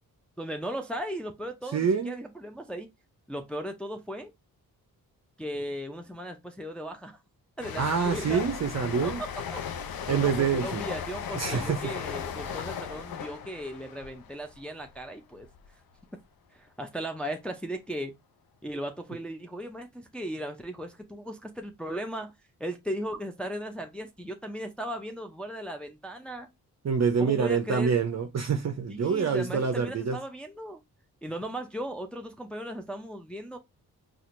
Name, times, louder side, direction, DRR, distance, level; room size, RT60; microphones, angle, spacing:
voice 1, 0.4-2.9 3.3-4.3 5.4-7.2 7.6-8.4 9.0-9.1 9.5-9.6 10.1-15.5 16.5-18.2 18.6-22.3 22.6-26.5 27.2-28.0 28.9-30.8 31.2-33.6, equal, 5° left, 0.6 m, -37 dB
voice 2, 1.7-2.1 7.8-9.2 10.1-10.8 11.3-11.8 26.8-30.2, right 6 dB, 40° right, 0.6 m, -26 dB
sound 1, 7.6-15.1 15.4-15.7, left 7 dB, 60° left, 0.6 m, -36 dB
4.2 x 2.5 x 2.5 m
supercardioid pair, 45°, 40 cm